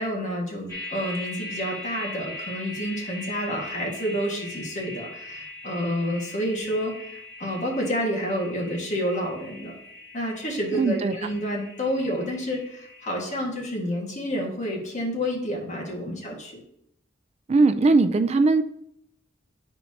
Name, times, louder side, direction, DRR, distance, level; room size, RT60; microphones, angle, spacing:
voice 1, 0.0-9.8 10.1-16.6, equal, 40° left, -2 dB, 1.6 m, -29 dB
sound 1, 0.7-13.2, left 2 dB, 15° left, 1.6 m, -40 dB
voice 2, 10.7-11.2 17.5-18.6, right 3 dB, 35° right, 9 dB, 0.4 m, -19 dB
10.0 x 4.4 x 2.7 m, 0.74 s
head